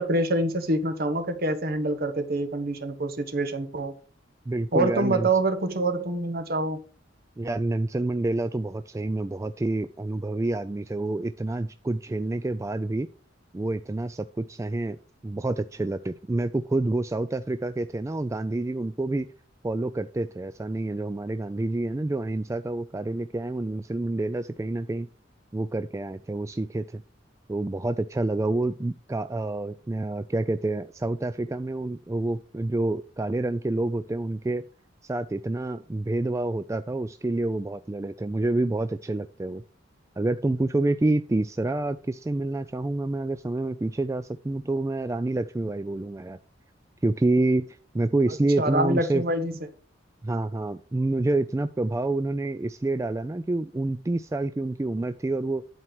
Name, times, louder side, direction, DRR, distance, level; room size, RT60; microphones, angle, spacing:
voice 1, 0.0-3.9 4.7-6.8 48.6-49.5, right 2 dB, 50° right, 1.4 m, -26 dB
voice 2, 4.5-5.3 7.4-13.1 13.5-15.0 15.2-19.3 19.6-25.1 25.5-27.0 27.5-34.6 35.0-39.6 40.2-46.4 47.0-47.7 47.9-49.2 50.2-55.6, right 2 dB, 15° right, 0.3 m, -28 dB
11.0 x 4.4 x 6.1 m
head